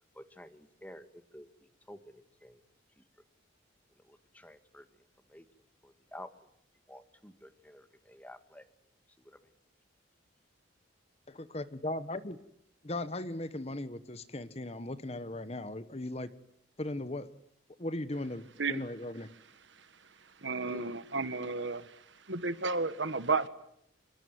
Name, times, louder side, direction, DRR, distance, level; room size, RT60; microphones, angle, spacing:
voice 1, 0.1-1.5 1.9-2.6 3.0-3.1 4.0-4.9 5.3-5.5 5.8-6.3 6.9-8.7 9.2-9.5 20.7-20.9, left 1 dB, 10° left, 9 dB, 1.8 m, -51 dB
voice 2, 11.3-12.4 12.8-16.3 16.8-17.3 17.8-19.3, left 1 dB, 30° left, 13 dB, 1.2 m, -38 dB
voice 3, 20.4-21.9 22.3-23.5, right 4 dB, 65° right, 13 dB, 1.6 m, -32 dB
26.5 x 22.0 x 9.4 m, 0.74 s
head